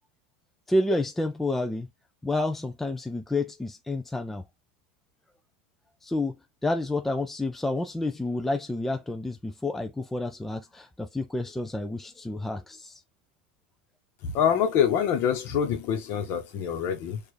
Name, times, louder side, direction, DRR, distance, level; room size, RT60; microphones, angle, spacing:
voice 1, 0.7-1.9 2.2-4.4 6.0-6.4 6.6-13.0, left 2 dB, 5° left, 0.3 m, -29 dB
voice 2, 14.2-17.2, left 8 dB, 50° left, 1.1 m, -25 dB
4.5 x 2.5 x 3.2 m
supercardioid pair, 130°, 5 cm